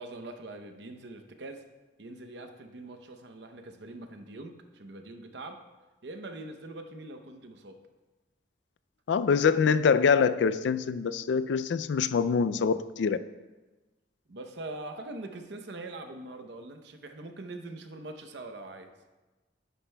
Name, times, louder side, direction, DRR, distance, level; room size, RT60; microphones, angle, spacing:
voice 1, 0.0-1.7 2.0-5.7 6.0-7.8 14.3-18.9, right 2 dB, 75° right, 6 dB, 0.7 m, -43 dB
voice 2, 9.1-13.2, left 6 dB, 80° left, 14 dB, 0.3 m, -24 dB
10.0 x 9.9 x 2.2 m, 1.2 s
head